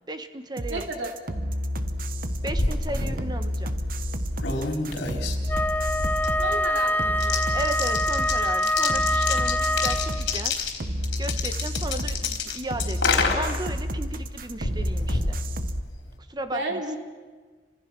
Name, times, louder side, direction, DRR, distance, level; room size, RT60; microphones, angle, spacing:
voice 1, 0.1-0.9 2.4-3.7 7.5-10.5 11.2-15.4 16.3-16.8, right 2 dB, 25° right, 9 dB, 1.4 m, -35 dB
sound 1, 0.6-15.8, equal, 50° right, 1.3 m, -30 dB
voice 2, 0.7-1.1 6.4-7.5 16.5-17.0, right 2 dB, 85° right, 3 dB, 3.0 m, -32 dB
sound 2, 2.1-16.1, left 4 dB, 75° left, 3.9 m, -30 dB
Wind instrument woodwind instrument, 5.5-10.4, left 1 dB, 10° left, 0.7 m, -25 dB
30.0 x 26.0 x 6.2 m, 1.4 s
head